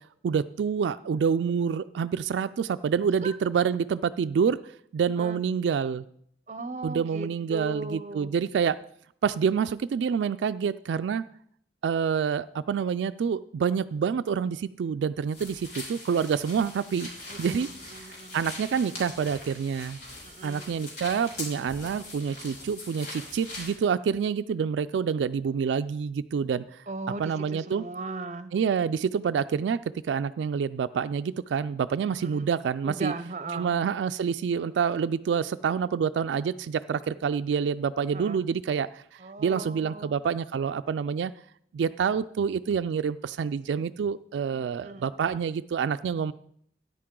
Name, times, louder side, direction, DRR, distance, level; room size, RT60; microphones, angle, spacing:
voice 1, 0.2-4.6 4.9-6.0 6.8-8.8 9.2-11.2 11.8-17.1 17.4-17.7 18.3-20.0 20.4-26.6 27.2-27.8 28.5-29.8 30.0-33.1 33.5-39.0 39.4-41.3 41.7-46.3, right 6 dB, 90° right, 11 dB, 0.3 m, -27 dB
voice 2, 6.5-8.3 17.3-18.4 20.2-20.8 26.9-28.5 32.2-32.5 32.8-33.7 38.1-38.5 39.2-40.2 44.8-45.5, right 3 dB, 40° right, 13 dB, 0.6 m, -38 dB
sound 1, 15.3-23.8, left 2 dB, 70° left, 3.8 m, -42 dB
13.0 x 9.8 x 3.7 m, 0.67 s
head